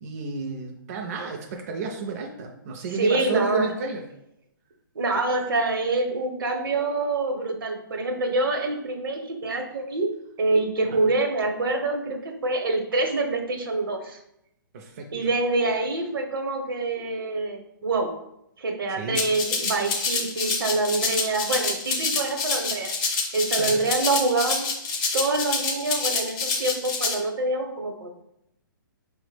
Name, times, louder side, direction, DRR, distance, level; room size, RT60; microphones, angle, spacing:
voice 1, 0.0-4.0 14.7-15.1 19.0-19.2 23.6-23.8, right 4 dB, 45° right, 1 dB, 0.4 m, -32 dB
voice 2, 3.0-3.7 4.9-10.1 10.4-14.2 15.1-18.1 18.6-22.9 23.3-24.7 25.1-28.1, right 2 dB, 80° right, 4 dB, 0.8 m, -26 dB
Rattle (instrument), 19.1-27.1, left 4 dB, 20° left, 0.5 m, -27 dB
4.5 x 2.1 x 3.2 m, 0.80 s
hypercardioid pair, 160°, 11 cm